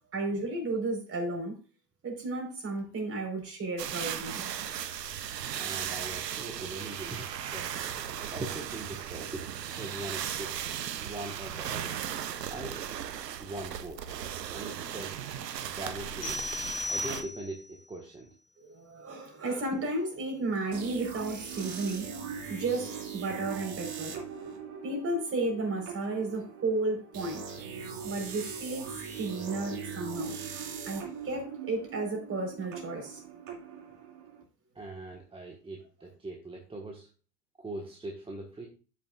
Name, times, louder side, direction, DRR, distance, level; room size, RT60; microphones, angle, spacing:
voice 1, 0.1-1.6 2.0-4.5 18.6-22.1 22.5-24.2 24.8-27.4 28.0-30.4 30.8-33.2, right 2 dB, 30° right, 4.4 m, -33 dB
sound 1, 3.8-17.2, right 9 dB, 90° right, 0.8 m, -37 dB
voice 2, 5.5-9.5 9.7-10.6 11.0-12.0 12.5-12.8 13.4-14.0 14.5-15.2 15.6-16.4 16.9-18.3 34.7-37.1 37.6-38.7, right 2 dB, 10° right, 1.4 m, -41 dB
sound 2, 16.2-17.8, left 2 dB, 70° left, 2.3 m, -36 dB
sound 3, 20.7-34.4, right 7 dB, 45° right, 2.4 m, -41 dB
12.5 x 6.5 x 2.4 m
hypercardioid pair, 90°, 48 cm